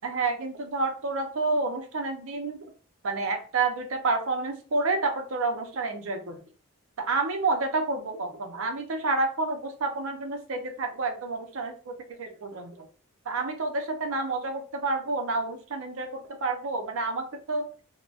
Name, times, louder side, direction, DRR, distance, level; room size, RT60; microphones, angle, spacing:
voice 1, 0.0-2.6 3.0-6.4 7.0-12.9 13.3-17.7, right 3 dB, 70° right, 5 dB, 0.6 m, -29 dB
3.8 x 2.1 x 2.3 m, 0.38 s
head